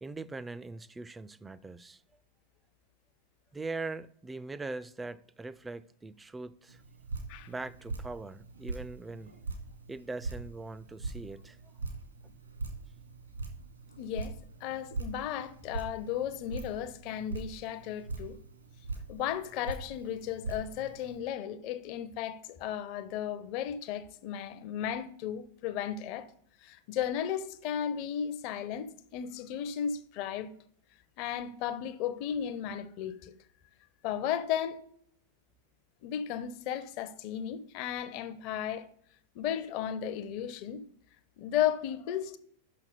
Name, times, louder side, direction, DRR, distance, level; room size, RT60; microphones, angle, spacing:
voice 1, 0.0-2.2 3.5-6.8 7.5-9.4 9.9-11.6, right 3 dB, 10° right, 0.3 m, -41 dB
Drip, 6.7-21.2, right 3 dB, 80° right, 1.6 m, -42 dB
voice 2, 14.0-14.3 14.6-18.4 19.1-26.3 26.6-30.5 31.2-33.3 34.0-34.8 36.0-38.9 39.3-40.8 41.4-42.4, left 9 dB, 45° left, 0.5 m, -35 dB
5.9 x 5.8 x 5.0 m
figure-of-eight pair, 90°, 0 cm